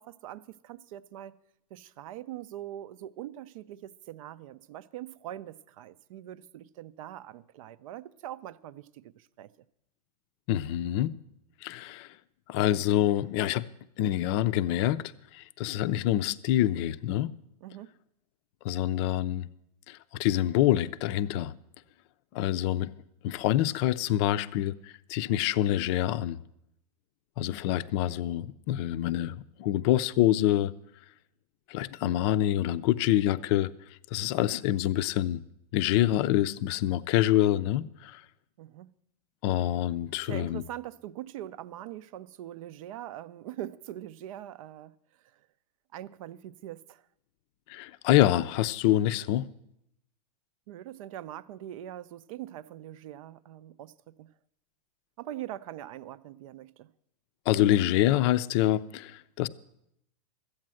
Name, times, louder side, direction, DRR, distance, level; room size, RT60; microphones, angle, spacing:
voice 1, 0.0-1.3 1.7-9.5 17.6-17.9 38.6-38.9 40.1-44.9 45.9-47.0 50.7-54.3 55.2-56.9, right 12 dB, 55° right, 0.5 m, -42 dB
voice 2, 10.5-11.2 11.6-12.1 12.5-13.6 14.0-15.0 15.3-17.4 18.6-19.5 19.9-21.5 22.3-22.9 23.2-26.4 27.4-30.7 31.7-33.7 34.1-35.4 35.7-38.2 39.4-40.6 47.7-49.5 57.5-59.5, left 13 dB, 40° left, 0.5 m, -26 dB
13.0 x 8.6 x 7.6 m
hypercardioid pair, 135°, 21 cm